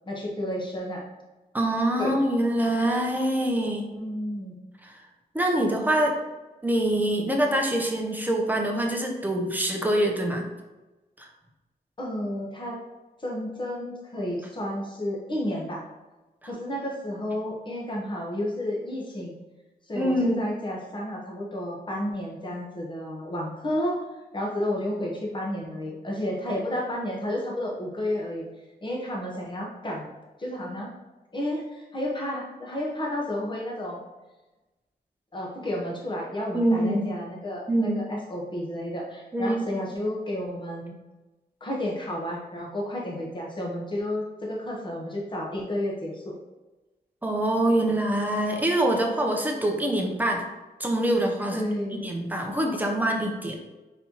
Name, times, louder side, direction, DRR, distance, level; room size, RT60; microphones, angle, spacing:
voice 1, 0.0-1.0 2.0-2.2 3.9-4.6 12.0-12.8 13.2-15.8 16.4-19.3 19.9-24.0 24.3-28.4 28.8-30.1 30.4-30.9 31.3-34.0 35.3-41.0 41.6-46.4 47.8-48.0 51.5-52.1, left 1 dB, 30° left, -2 dB, 1.1 m, -31 dB
voice 2, 1.5-3.9 4.8-5.0 5.3-6.2 6.6-10.5 11.2-11.3 19.9-20.4 36.5-37.1 37.7-38.0 39.3-39.7 47.2-50.4 50.8-51.6 52.0-53.6, right 1 dB, 10° right, 1 dB, 0.7 m, -25 dB
4.2 x 4.1 x 2.9 m, 1.1 s
wide cardioid pair, 125°, 17 cm